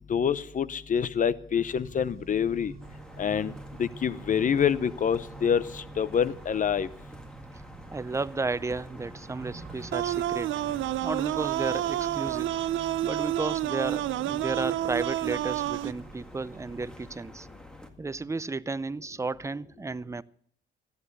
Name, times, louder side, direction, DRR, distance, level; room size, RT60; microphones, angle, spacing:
voice 1, 0.1-2.7 3.2-3.5 3.8-6.9, left 7 dB, 40° left, 0.7 m, -26 dB
Accelerating revving vroom, 1.7-17.2, right 4 dB, 45° right, 3.3 m, -49 dB
sound 1, 2.8-17.9, equal, 5° left, 1.8 m, -48 dB
voice 2, 7.9-10.5 11.0-12.5 13.0-17.5 18.0-20.2, right 3 dB, 15° right, 0.5 m, -33 dB
sound 2, 9.9-15.9, right 13 dB, 75° right, 0.5 m, -29 dB
13.5 x 10.5 x 6.7 m
cardioid pair, 90°, 20 cm